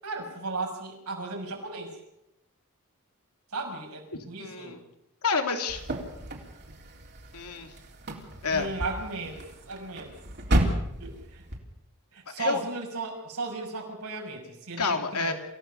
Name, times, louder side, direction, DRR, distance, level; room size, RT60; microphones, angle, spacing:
voice 1, 0.0-1.9 3.5-4.8 8.5-9.4 9.6-10.1 11.0-11.4 12.1-15.3, right 3 dB, 80° right, 1 dB, 6.6 m, -35 dB
voice 2, 4.4-4.8 5.2-5.8 7.3-7.7 8.4-8.7 12.3-12.6 14.8-15.3, left 4 dB, 85° left, 5 dB, 2.9 m, -28 dB
sound 1, 5.7-11.6, right 1 dB, 50° right, 3.9 m, -32 dB
27.5 x 16.0 x 7.0 m, 0.84 s
head